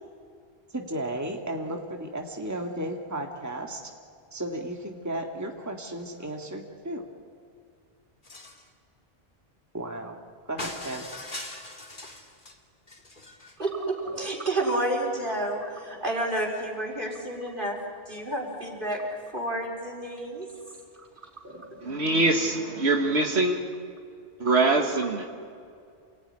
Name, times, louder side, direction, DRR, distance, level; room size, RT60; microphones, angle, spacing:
voice 1, 0.7-3.9 4.3-7.0 9.7-10.2 10.5-11.1, right 1 dB, 15° right, 2 dB, 1.9 m, -34 dB
sound 1, 8.2-8.7 10.6-12.6 12.9-13.6, left 2 dB, 50° left, 2.6 m, -40 dB
voice 2, 13.6-17.8 18.1-19.0 19.3-20.5 21.0-21.1 21.4-21.8, right 1 dB, 50° right, -1 dB, 4.5 m, -30 dB
voice 3, 21.8-23.6 24.4-25.3, right 2 dB, 80° right, 2 dB, 1.9 m, -23 dB
28.5 x 18.5 x 10.0 m, 2.4 s
omnidirectional pair, 1.1 m